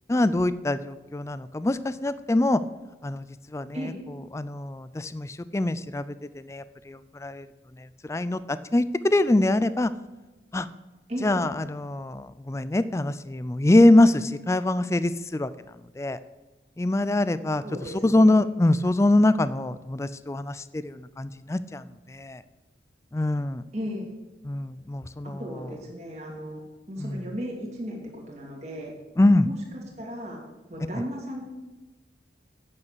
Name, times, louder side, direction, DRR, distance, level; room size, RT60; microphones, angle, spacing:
voice 1, 0.1-2.6 3.0-3.9 4.3-7.5 7.8-9.9 10.5-10.7 11.2-15.5 16.0-16.2 16.8-17.6 18.0-22.4 23.1-23.6 24.4-25.4 27.0-27.2 29.2-29.5, left 1 dB, 15° left, 14 dB, 0.3 m, -24 dB
voice 2, 17.6-18.4 23.7-24.1 25.4-26.6 26.9-28.9 29.4-30.4 30.7-31.4, equal, 40° right, -2 dB, 2.5 m, -35 dB
8.7 x 6.8 x 8.1 m, 1.2 s
head